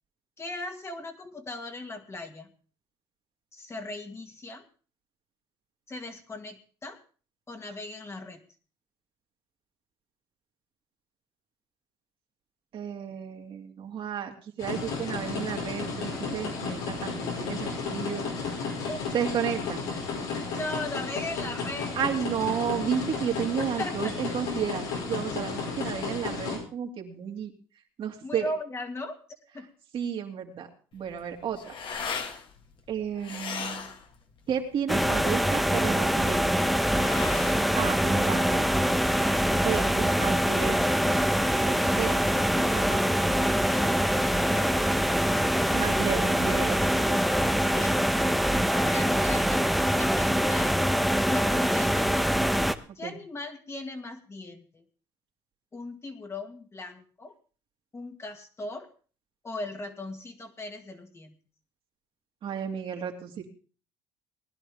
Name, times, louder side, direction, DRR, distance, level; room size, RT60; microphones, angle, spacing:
voice 1, 0.4-2.5 3.5-4.6 5.9-7.0 7.5-8.4 18.9-19.0 20.6-22.0 23.6-24.2 28.2-29.2 29.5-29.7 44.4-45.0 47.7-48.1 48.7-50.8 51.3-52.3 53.0-54.8 55.7-57.3 57.9-58.9 59.4-61.4, left 2 dB, 25° left, 5 dB, 2.0 m, -38 dB
voice 2, 12.7-18.2 19.1-19.8 22.0-27.5 28.0-28.5 29.9-30.7 30.9-31.7 32.9-33.9 34.5-36.5 37.8-38.7 39.5-40.8 41.6-42.1 42.5-43.0 45.7-47.2 52.9-53.2 62.4-63.5, right 8 dB, 55° right, 2 dB, 2.6 m, -32 dB
sound 1, 14.6-26.6, left 4 dB, 85° left, 5.1 m, -33 dB
sound 2, 30.9-38.8, left 5 dB, 50° left, 1.9 m, -39 dB
sound 3, 34.9-52.8, equal, ahead, 0.9 m, -24 dB
19.5 x 11.0 x 3.6 m, 0.38 s
supercardioid pair, 85°, 11 cm